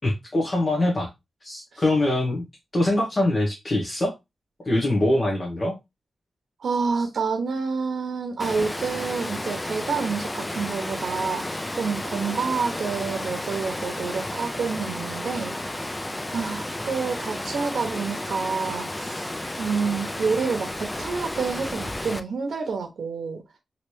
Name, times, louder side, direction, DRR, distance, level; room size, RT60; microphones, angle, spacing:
voice 1, 0.0-1.1 1.4-2.4 2.7-4.2 4.6-5.8, left 1 dB, 35° left, 0.9 m, -23 dB
voice 2, 6.6-15.5 16.3-19.3 19.6-23.4, right 5 dB, 90° right, 0.7 m, -28 dB
Water, 8.4-22.2, left 1 dB, 15° left, 0.3 m, -32 dB
3.1 x 2.7 x 3.0 m
wide cardioid pair, 130°, 0 cm